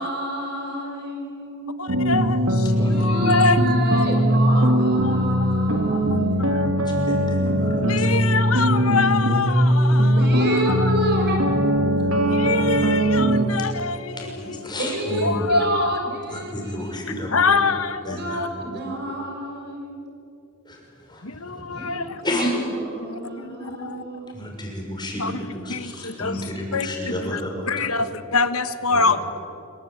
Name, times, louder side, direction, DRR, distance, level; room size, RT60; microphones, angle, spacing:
voice 1, 0.0-1.8 2.7-6.6 10.0-11.4 14.8-17.2 18.0-20.1 21.7-22.1 22.4-24.3 24.8-24.9 28.9-29.1, right 1 dB, 50° right, 1 dB, 6.7 m, -30 dB
voice 2, 1.8-4.7 5.0-5.2 6.1-6.6 7.8-10.9 12.3-14.8 15.2-15.9 17.3-18.5 21.2-22.2 23.0-24.0 25.2-25.4 25.7-26.4 26.7-26.9 27.2-27.4 27.7-29.2, left 4 dB, 80° left, 11 dB, 1.4 m, -25 dB
sound 1, 1.9-13.4, equal, 80° right, 2.6 m, -20 dB
voice 3, 7.1-8.1 9.8-9.9 12.1-12.2 13.5-13.7 14.2-15.5 16.3-17.5 18.1-18.4 20.7-20.8 21.1-21.2 22.2-22.5 24.3-27.7 28.9-29.0, left 1 dB, 20° left, 0 dB, 6.4 m, -31 dB
26.0 x 24.0 x 8.8 m, 2.8 s
head